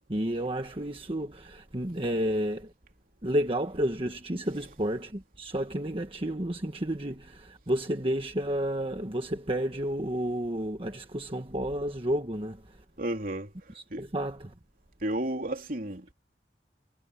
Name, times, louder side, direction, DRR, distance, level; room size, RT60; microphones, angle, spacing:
voice 1, 0.1-2.7 3.2-12.8 13.7-14.5, right 1 dB, 30° right, 1.4 m, -31 dB
voice 2, 13.0-13.5 13.9-14.0 15.0-16.1, right 1 dB, 50° right, 3.3 m, -32 dB
head